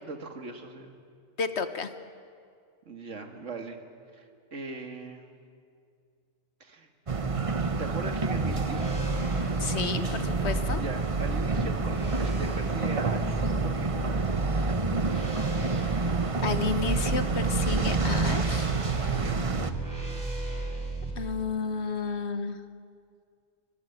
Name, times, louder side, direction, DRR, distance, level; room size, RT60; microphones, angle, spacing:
voice 1, 0.0-0.9 2.9-3.8 4.1-5.4 6.6-6.9 7.8-8.8 10.7-13.9 19.0-19.5, right 3 dB, 80° right, 5 dB, 2.3 m, -40 dB
voice 2, 1.4-1.9 9.6-10.8 16.4-18.7 21.2-22.6, left 5 dB, 65° left, 10 dB, 1.4 m, -31 dB
sound 1, 7.1-19.7, right 4 dB, 30° right, 0.9 m, -28 dB
sound 2, 8.3-21.1, right 1 dB, 15° right, 4.7 m, -34 dB
24.0 x 23.0 x 9.2 m, 2.3 s
omnidirectional pair, 1.2 m